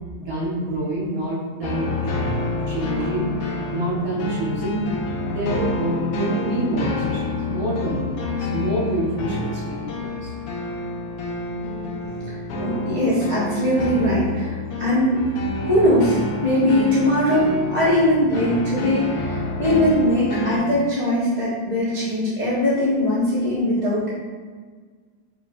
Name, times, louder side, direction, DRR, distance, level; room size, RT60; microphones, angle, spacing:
voice 1, 0.2-1.9 2.7-3.3 3.7-4.9 5.2-10.3, right 1 dB, 60° right, -7 dB, 1.1 m, -27 dB
sound 1, 1.6-20.6, left 2 dB, 85° left, 0.7 m, -28 dB
voice 2, 12.6-15.2 15.6-24.1, left 1 dB, 30° left, -11 dB, 0.6 m, -20 dB
5.1 x 2.8 x 2.3 m, 1.5 s
omnidirectional pair, 2.1 m